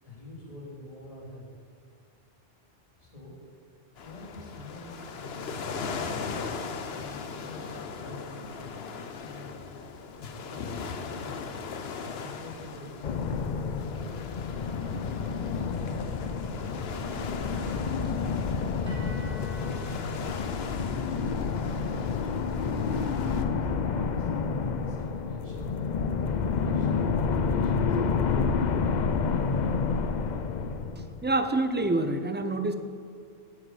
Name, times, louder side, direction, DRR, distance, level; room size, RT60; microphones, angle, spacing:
voice 1, 0.0-1.5 3.0-3.3 4.0-6.3 7.0-8.4 9.2-11.5 12.2-13.3 13.8-15.7 16.5-18.2 19.2-20.4 21.5-22.3 22.6-24.3 24.8-25.8 26.2-29.0, left 1 dB, 30° left, -4 dB, 2.9 m, -46 dB
sound 1, 4.0-23.4, left 5 dB, 65° left, 1.0 m, -39 dB
sound 2, 13.0-31.5, left 5 dB, 50° left, 0.6 m, -29 dB
sound 3, 18.9-27.1, right 1 dB, 45° right, 1.7 m, -55 dB
voice 2, 31.0-32.7, right 2 dB, 20° right, 8 dB, 0.3 m, -27 dB
8.4 x 7.8 x 8.1 m, 2.3 s
omnidirectional pair, 1.1 m